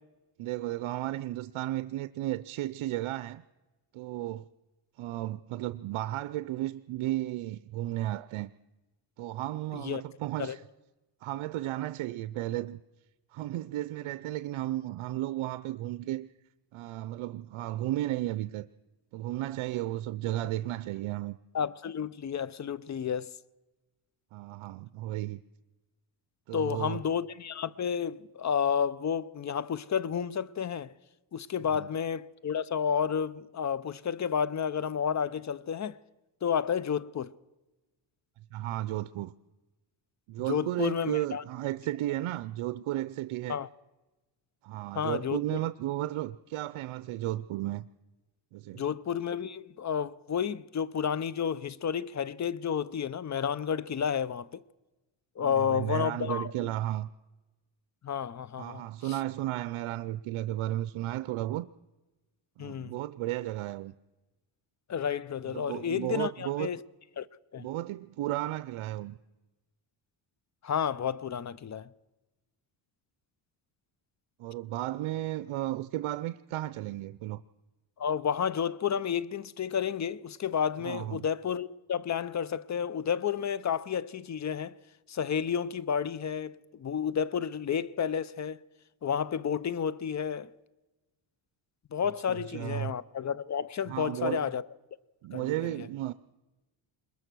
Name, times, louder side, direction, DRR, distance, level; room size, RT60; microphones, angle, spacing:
voice 1, 0.4-3.4 3.9-4.5 5.0-8.5 9.2-10.6 11.2-12.8 13.3-16.3 16.7-18.7 19.1-21.4 24.3-25.4 26.5-27.0 31.7-31.9 38.5-39.3 40.3-43.6 44.6-47.8 48.5-48.8 55.4-57.1 58.6-61.7 62.6-63.9 65.5-66.7 67.6-69.2 74.4-77.4 80.8-81.2 92.3-92.9 93.9-94.5 95.2-96.1, right 15 dB, 75° right, 0.7 m, -34 dB
voice 2, 21.5-23.4 26.5-30.9 31.3-36.0 36.4-37.3 40.5-41.4 43.5-43.7 44.9-45.6 48.8-54.6 55.4-56.7 58.0-58.8 62.6-62.9 64.9-66.8 67.2-67.3 67.5-67.7 70.6-71.9 78.0-84.8 85.1-88.6 89.0-90.5 91.9-94.7 95.3-95.7, left 7 dB, 35° left, 0.6 m, -31 dB
21.5 x 21.0 x 6.2 m
cardioid pair, 95°, 49 cm